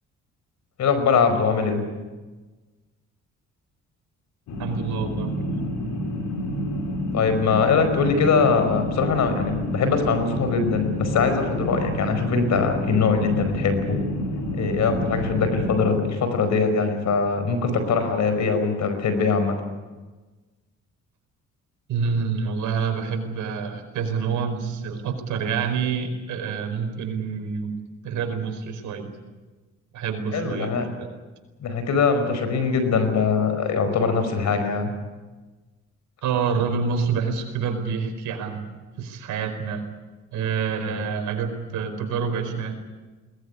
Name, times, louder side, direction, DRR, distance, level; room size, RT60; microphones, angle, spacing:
voice 1, 0.8-1.8 7.1-14.0 14.5-19.6 30.3-30.9 31.6-34.9 40.9-41.1, left 5 dB, 70° left, 9 dB, 5.2 m, -22 dB
sound 1, 4.5-15.8, left 1 dB, 85° left, 5.2 m, -29 dB
voice 2, 4.6-5.5 21.9-27.8 28.0-29.1 29.9-31.1 36.2-39.9 40.3-42.7, right 6 dB, 80° right, 5 dB, 4.9 m, -27 dB
21.5 x 20.0 x 9.9 m, 1.3 s
cardioid pair, 90°, 30 cm